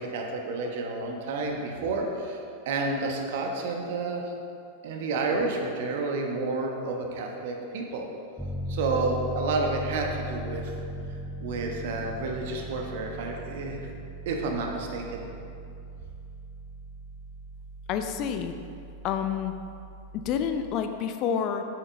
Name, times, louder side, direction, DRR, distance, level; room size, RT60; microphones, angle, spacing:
voice 1, 0.0-2.4 2.6-4.3 4.8-8.0 8.7-10.8 11.4-13.9 14.2-15.2, right 3 dB, 50° right, 1 dB, 1.3 m, -30 dB
Piano, 8.4-20.6, equal, 5° left, 0.9 m, -38 dB
voice 2, 17.9-18.5 19.0-19.5 20.1-21.6, left 8 dB, 40° left, 7 dB, 0.6 m, -28 dB
9.6 x 8.3 x 4.0 m, 2.5 s
figure-of-eight pair, 90°, 0 cm